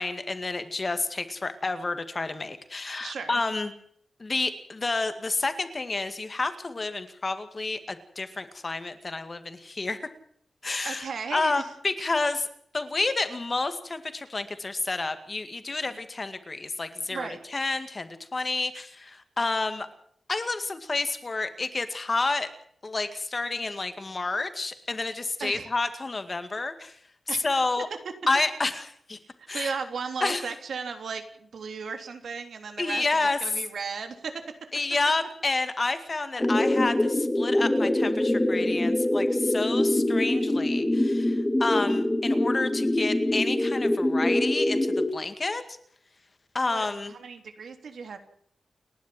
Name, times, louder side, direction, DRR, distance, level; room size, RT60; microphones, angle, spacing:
voice 1, 0.0-3.7 4.2-10.1 10.6-12.5 12.7-19.9 20.3-22.5 22.8-27.0 27.4-27.9 28.3-28.8 29.1-29.2 29.5-29.8 30.2-30.5 32.8-33.4 34.7-45.8 46.5-47.2, left 3 dB, 30° left, 9 dB, 2.1 m, -30 dB
voice 2, 3.0-3.4 10.8-11.7 15.9-16.0 17.1-17.4 25.4-25.7 27.3-27.4 29.5-33.0 33.4-34.4 46.7-48.2, right 5 dB, 75° right, 7 dB, 3.4 m, -35 dB
sound 1, 36.4-45.1, left 1 dB, 15° left, 2.0 m, -24 dB
30.0 x 11.5 x 7.7 m, 0.65 s
wide cardioid pair, 155°, 0 cm